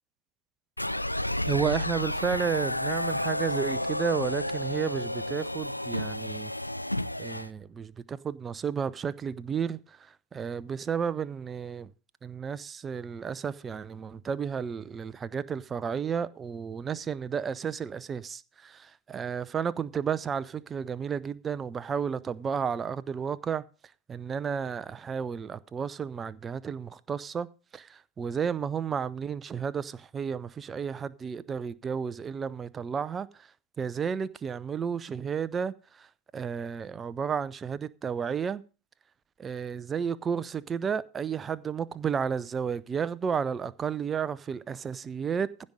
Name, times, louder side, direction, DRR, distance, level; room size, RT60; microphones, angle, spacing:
sound 1, 0.8-7.5, left 1 dB, 85° left, 0.5 m, -31 dB
voice 1, 1.5-6.5 7.2-11.9 12.2-23.6 24.1-27.5 27.7-33.5 33.8-36.1 36.3-38.6 39.4-45.5, right 7 dB, 20° right, 0.6 m, -32 dB
15.5 x 5.4 x 6.3 m
figure-of-eight pair, 90°, 0 cm